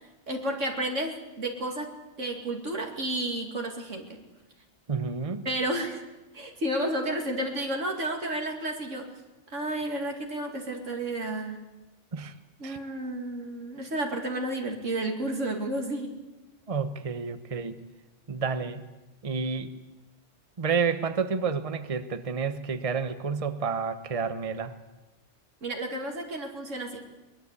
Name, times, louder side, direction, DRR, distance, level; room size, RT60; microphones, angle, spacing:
voice 1, 0.3-4.2 5.4-6.0 6.3-9.1 9.5-11.7 12.6-16.2 25.6-27.1, right 1 dB, 85° right, 3 dB, 2.9 m, -31 dB
voice 2, 4.9-5.4 12.1-12.3 12.6-12.8 16.7-17.8 18.3-18.8 19.2-19.7 20.6-24.7, right 5 dB, 30° right, 11 dB, 1.1 m, -30 dB
22.0 x 21.0 x 8.3 m, 1.1 s
omnidirectional pair, 1.3 m